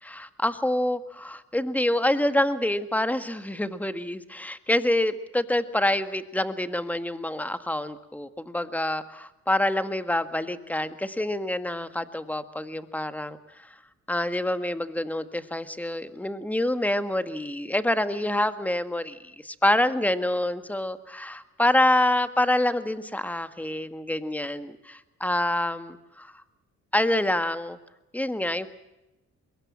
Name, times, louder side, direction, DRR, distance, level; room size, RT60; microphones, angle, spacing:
voice 1, 0.0-13.7 14.1-26.4 26.9-27.8 28.1-28.7, left 1 dB, 5° left, 11 dB, 1.7 m, -27 dB
24.5 x 22.0 x 7.5 m, 0.95 s
cardioid pair, 90°, 30 cm